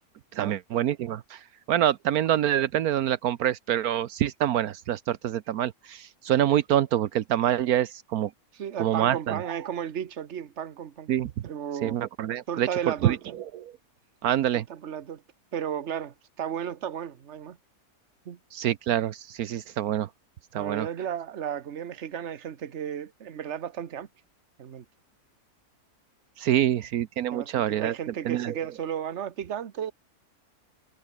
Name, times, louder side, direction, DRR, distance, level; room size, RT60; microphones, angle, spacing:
voice 1, 0.3-8.3 8.8-9.4 11.1-11.3 11.8-12.7 13.0-13.7 14.2-14.6 18.5-20.1 20.5-20.9 26.4-27.9 28.2-28.5, right 11 dB, 75° right, 1.2 m, -26 dB
voice 2, 8.5-11.1 11.4-12.0 12.5-13.2 14.5-15.2 15.5-17.6 18.2-18.4 20.5-24.1 24.6-24.8 27.3-29.9, right 9 dB, 50° right, 1.4 m, -34 dB
omnidirectional pair, 1.6 m